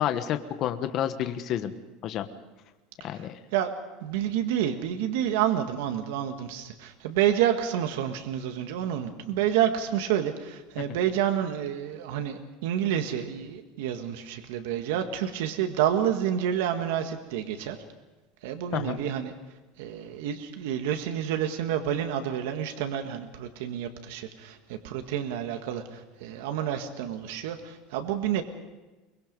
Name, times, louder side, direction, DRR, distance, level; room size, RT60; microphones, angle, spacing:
voice 1, 0.0-1.7 2.0-2.3 3.0-3.4 10.8-10.9 18.7-19.0, left 10 dB, 35° left, 8 dB, 1.2 m, -29 dB
voice 2, 4.0-17.8 18.4-19.3 19.8-28.4, right 10 dB, 80° right, 6 dB, 1.7 m, -29 dB
23.5 x 21.5 x 5.4 m, 1.2 s
cardioid pair, 165°, 0 cm